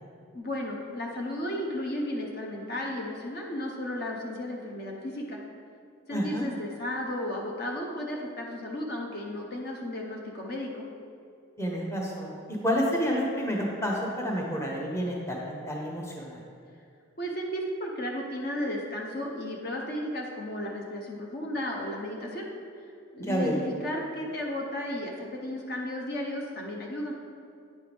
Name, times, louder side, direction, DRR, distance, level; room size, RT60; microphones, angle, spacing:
voice 1, 0.3-5.4 6.1-10.8 17.2-22.5 23.1-27.1, left 1 dB, 50° left, -1 dB, 0.7 m, -34 dB
voice 2, 6.1-6.5 11.6-12.3 12.6-16.4 23.2-23.6, equal, 15° left, -2 dB, 0.9 m, -29 dB
9.1 x 5.6 x 3.4 m, 2.5 s
head